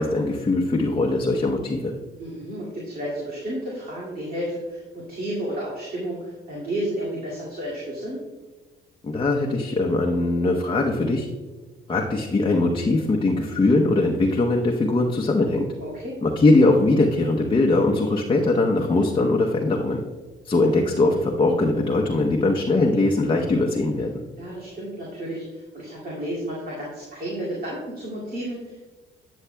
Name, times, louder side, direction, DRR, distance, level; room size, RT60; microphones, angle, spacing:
voice 1, 0.0-1.9 9.0-11.3 11.9-15.7 16.2-20.0 20.4-24.2, left 2 dB, 25° left, 0 dB, 0.7 m, -21 dB
voice 2, 2.2-8.2 15.8-16.2 24.4-28.9, right 1 dB, 45° right, -6 dB, 2.2 m, -32 dB
9.8 x 7.1 x 2.2 m, 1.3 s
cardioid pair, 90°, 20 cm